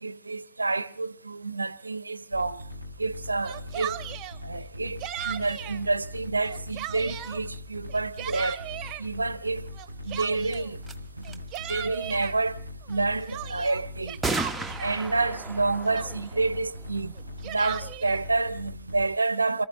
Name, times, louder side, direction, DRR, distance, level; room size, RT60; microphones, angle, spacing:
voice 1, 0.0-2.6 3.0-4.0 4.4-5.0 5.2-8.6 9.0-9.7 10.0-10.8 11.3-11.4 11.7-12.6 12.9-14.2 14.8-17.1 17.4-19.6, right 3 dB, 80° right, 0.7 m, -28 dB
sound 1, 2.3-19.1, left 1 dB, 85° left, 4.7 m, -41 dB
Yell, 3.3-4.4 5.0-5.8 6.3-7.4 7.9-9.0 9.8-10.7 11.2-12.3 12.9-15.0 15.6-15.7 15.9-16.4 17.2-18.2, right 12 dB, 35° right, 1.1 m, -37 dB
sound 2, 10.5-10.6 10.8-11.0 11.2-11.8 14.2-17.6, right 2 dB, 5° right, 1.2 m, -35 dB
28.0 x 14.0 x 3.7 m
figure-of-eight pair, 90°, 0 cm